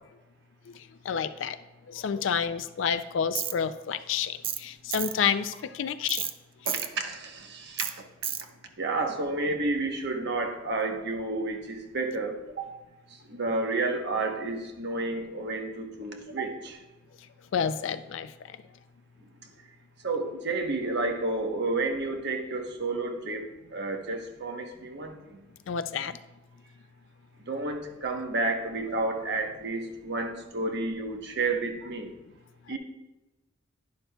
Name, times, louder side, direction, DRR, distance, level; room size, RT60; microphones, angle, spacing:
voice 1, 1.1-1.6 1.9-6.3 17.5-18.3 25.7-26.1, left 7 dB, 70° left, 12 dB, 0.4 m, -29 dB
Tools, 3.4-3.5 4.4-4.6 4.9-5.1 6.1-6.3 6.7-6.9 7.8-7.9 8.2-8.4, right 9 dB, 30° right, 0.4 m, -31 dB
voice 2, 6.6-7.8 8.8-12.7 13.3-16.8 20.0-25.4 27.5-32.1 32.7-32.8, right 2 dB, 60° right, 4 dB, 1.0 m, -31 dB
11.0 x 10.5 x 2.3 m, 1.1 s
head